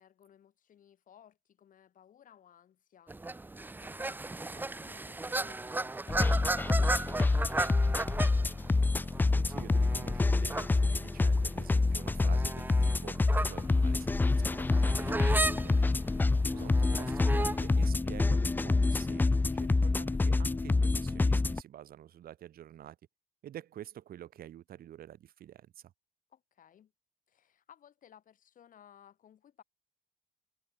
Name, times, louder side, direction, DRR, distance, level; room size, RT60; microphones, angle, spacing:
voice 1, 0.0-3.4 3.8-8.1 16.9-17.2 26.3-26.9 27.3-29.6, left 9 dB, 50° left, 6.8 m, -60 dB
sound 1, 3.1-17.8, right 2 dB, 10° right, 0.9 m, -37 dB
sound 2, 6.1-21.6, left 3 dB, 10° left, 0.4 m, -27 dB
voice 2, 9.2-15.9 16.2-23.0 23.4-25.9, right 11 dB, 60° right, 4.8 m, -49 dB
cardioid pair, 110°, 17 cm